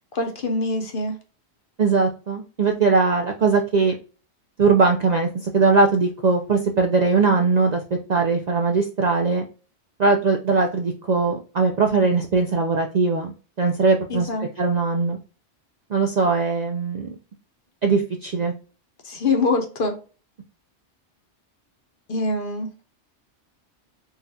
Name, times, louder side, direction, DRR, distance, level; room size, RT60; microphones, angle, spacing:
voice 1, 0.1-1.2 14.1-14.5 19.0-20.0 22.1-22.7, left 3 dB, 55° left, 0.8 m, -24 dB
voice 2, 1.8-3.9 4.6-7.8 8.1-9.5 10.0-14.3 14.6-15.2 15.9-17.2 17.8-18.5, right 4 dB, 60° right, 0.4 m, -20 dB
4.0 x 2.3 x 2.6 m
omnidirectional pair, 1.2 m